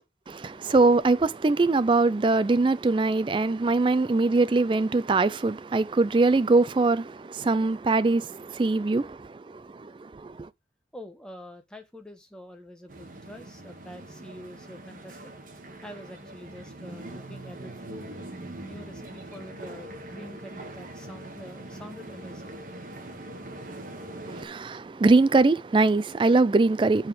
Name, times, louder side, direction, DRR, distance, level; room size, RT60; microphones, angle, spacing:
voice 1, 0.3-10.5 24.3-27.1, right 3 dB, 30° right, 0.3 m, -22 dB
voice 2, 10.9-15.2 15.8-18.1 18.6-22.5, left 1 dB, 5° left, 0.9 m, -45 dB
sound 1, 12.9-24.5, right 1 dB, 50° right, 1.4 m, -42 dB
5.9 x 4.8 x 4.7 m
head